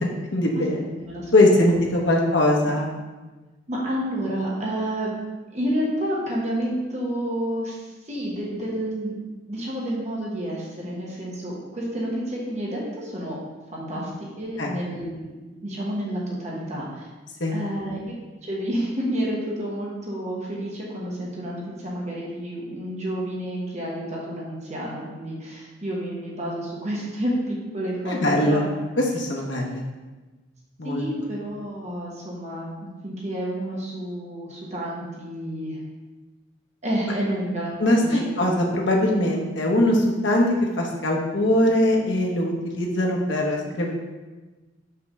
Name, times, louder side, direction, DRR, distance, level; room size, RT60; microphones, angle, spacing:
voice 1, 0.0-0.9 1.3-2.9 13.9-14.0 14.6-14.7 17.4-17.6 28.1-28.6 29.0-29.8 30.8-31.0 37.8-43.9, left 1 dB, 70° left, -1 dB, 1.1 m, -21 dB
voice 2, 1.0-1.3 1.7-1.8 2.2-2.3 3.7-5.2 5.5-9.1 9.5-13.4 13.7-15.3 15.6-17.1 17.5-18.1 18.4-28.7 30.8-35.8 36.8-38.5, equal, 40° right, -4 dB, 1.2 m, -30 dB
5.7 x 3.5 x 5.4 m, 1.2 s
head